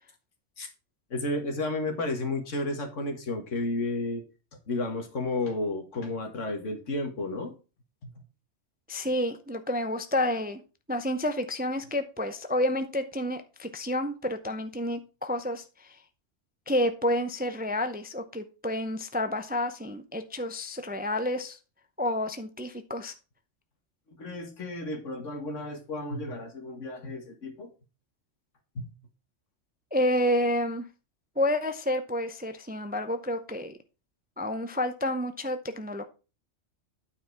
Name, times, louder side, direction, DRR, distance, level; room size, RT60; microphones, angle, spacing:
voice 1, 1.1-4.2 4.7-7.5 8.0-8.1 24.1-27.7 28.8-28.9, left 2 dB, 85° left, 5 dB, 1.9 m, -32 dB
voice 2, 8.9-10.6 10.9-16.0 16.7-21.6 22.0-23.1 29.9-30.9 31.4-33.8 34.4-36.0, left 1 dB, 10° right, 9 dB, 0.4 m, -29 dB
9.0 x 4.8 x 4.6 m, 0.32 s
omnidirectional pair, 1.3 m